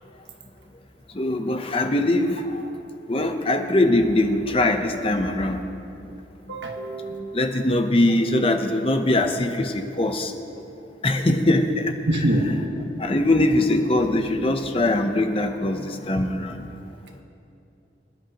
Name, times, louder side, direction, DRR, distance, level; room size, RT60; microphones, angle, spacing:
voice 1, 1.1-2.7 3.1-5.6 7.2-10.3 11.0-12.7 13.0-16.7, left 1 dB, 30° left, 5 dB, 0.8 m, -22 dB
voice 2, 6.5-7.2 12.1-12.6, right 1 dB, 80° right, 2 dB, 1.4 m, -24 dB
25.0 x 10.5 x 3.0 m, 2.7 s
head